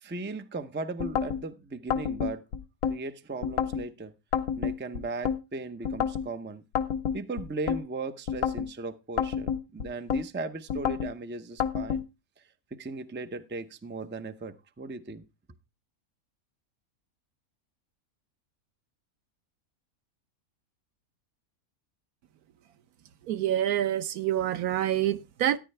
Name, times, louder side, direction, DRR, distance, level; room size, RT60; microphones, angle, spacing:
voice 1, 0.0-2.4 2.9-4.1 4.6-6.6 7.1-12.0 12.7-15.2, right 3 dB, 15° right, 0.4 m, -37 dB
sound 1, 1.0-1.4 1.9-3.0 3.4-3.8 4.3-5.4 5.8-6.3 6.8-7.8 8.3-8.7 9.2-10.2 10.7-11.1 11.6-12.0, left 8 dB, 75° left, 1.3 m, -29 dB
voice 2, 23.3-25.6, right 11 dB, 85° right, 1.3 m, -27 dB
13.5 x 10.5 x 3.3 m
omnidirectional pair, 1.5 m